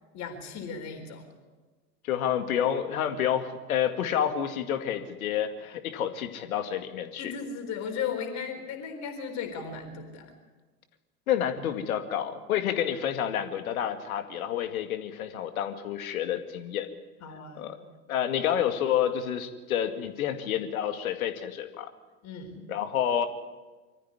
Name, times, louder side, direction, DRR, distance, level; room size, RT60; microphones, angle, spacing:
voice 1, 0.1-1.3 7.2-10.3 17.2-17.7 22.2-22.7, left 6 dB, 35° left, 4 dB, 4.2 m, -36 dB
voice 2, 2.0-7.3 11.3-16.9 17.6-17.8 18.1-21.9 22.7-23.3, left 9 dB, 60° left, 8 dB, 2.3 m, -29 dB
24.5 x 14.5 x 9.9 m, 1.3 s
figure-of-eight pair, 90°, 48 cm